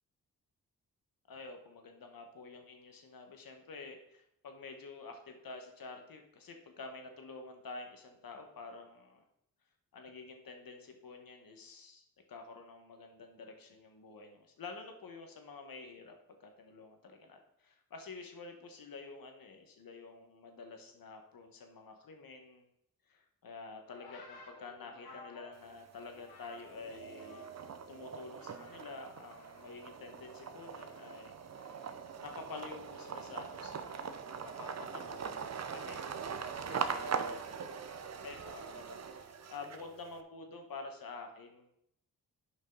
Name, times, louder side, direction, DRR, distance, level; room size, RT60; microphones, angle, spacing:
voice 1, 1.3-9.2 9.9-22.6 23.1-27.5 27.9-31.4 31.6-31.8 32.2-37.9 38.2-41.6, left 3 dB, 65° left, 4 dB, 1.4 m, -49 dB
sound 1, 23.9-27.8 28.1-29.0 29.3-32.0 32.8-33.2, left 3 dB, 80° left, 1.3 m, -57 dB
sound 2, 25.5-26.2 26.6-40.1, right 6 dB, 45° right, 0.7 m, -41 dB
9.8 x 5.4 x 3.9 m, 0.79 s
supercardioid pair, 45°, 38 cm